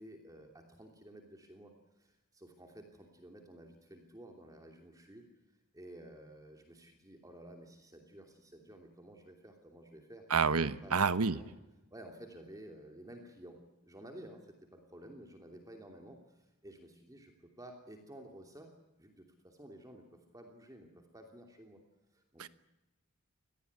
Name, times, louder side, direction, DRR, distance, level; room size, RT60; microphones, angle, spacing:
voice 1, 0.0-5.3 5.7-10.3 10.8-11.5 11.9-18.7 19.0-21.8 22.1-22.5, right 1 dB, 15° right, 3 dB, 3.0 m, -53 dB
voice 2, 10.3-11.4 22.4-22.5, right 5 dB, 80° right, 14 dB, 1.2 m, -29 dB
25.5 x 19.5 x 9.7 m, 0.98 s
head